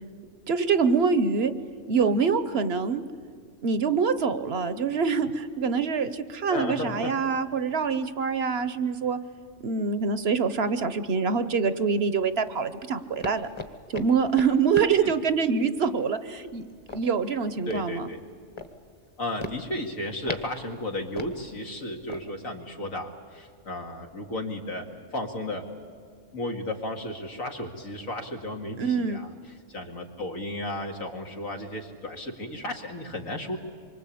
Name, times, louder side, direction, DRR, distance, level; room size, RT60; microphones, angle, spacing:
voice 1, 0.5-1.5 1.9-3.0 3.6-9.2 9.6-13.5 13.9-16.6 16.9-18.1 28.8-29.2, right 5 dB, 55° right, 12 dB, 1.0 m, -25 dB
voice 2, 6.5-7.1 15.0-15.1 17.7-18.2 19.2-24.9 25.1-25.7 26.3-29.3 29.7-33.6, left 1 dB, 80° left, 3 dB, 2.6 m, -34 dB
sound 1, 12.3-22.2, left 2 dB, 20° left, 1.2 m, -41 dB
26.0 x 24.0 x 8.5 m, 2.1 s
omnidirectional pair, 1.4 m